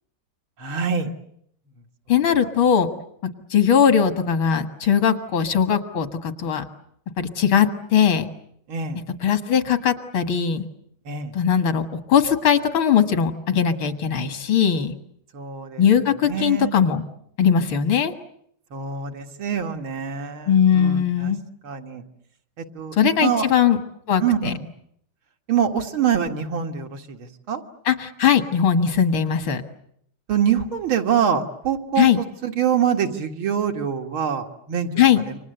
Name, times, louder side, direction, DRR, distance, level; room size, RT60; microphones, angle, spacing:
voice 1, 0.6-1.1 8.7-9.0 11.1-11.3 15.3-15.8 16.3-16.7 18.7-21.3 21.6-22.0 22.6-23.0 23.2-23.5 24.2-24.6 25.5-27.6 30.3-34.9 35.3-35.4, right 8 dB, 90° right, 4 dB, 2.8 m, -25 dB
voice 2, 2.1-2.9 3.5-6.6 7.2-8.3 9.2-10.6 11.3-14.9 15.8-17.0 17.4-18.1 20.5-21.4 22.9-23.8 24.1-24.5 27.9-29.6 32.0-32.2 35.0-35.2, left 8 dB, 80° left, 9 dB, 2.5 m, -19 dB
29.0 x 25.5 x 8.0 m, 0.71 s
omnidirectional pair, 2.2 m